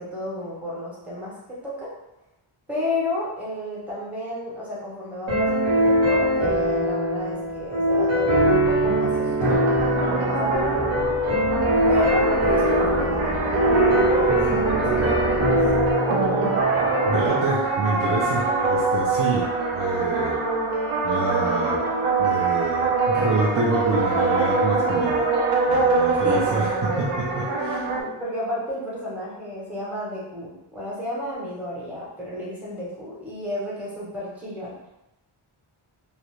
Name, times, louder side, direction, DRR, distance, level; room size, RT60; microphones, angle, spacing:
voice 1, 0.0-1.9 2.7-11.0 11.9-15.6 26.2-26.5 27.6-34.7, left 1 dB, 5° right, -7 dB, 0.8 m, -32 dB
sound 1, 5.3-17.3, equal, 70° right, 1.0 m, -22 dB
sound 2, 9.4-28.0, right 3 dB, 90° right, 0.6 m, -24 dB
sound 3, 10.5-15.9, left 2 dB, 30° left, 0.5 m, -35 dB
voice 2, 17.0-19.5 19.7-20.4 21.0-21.8 22.2-25.3 25.7-27.8, right 3 dB, 45° right, -5 dB, 0.4 m, -27 dB
2.4 x 2.0 x 2.9 m, 0.91 s
wide cardioid pair, 145°, 49 cm